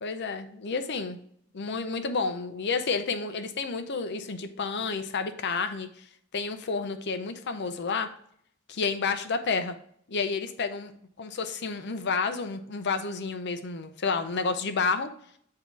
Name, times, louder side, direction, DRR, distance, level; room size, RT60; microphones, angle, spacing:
voice 1, 0.0-1.2 1.5-6.0 6.3-8.1 8.7-9.7 10.1-10.9 11.2-15.1, left 4 dB, 55° left, 8 dB, 0.6 m, -30 dB
8.1 x 2.9 x 4.6 m, 0.65 s
head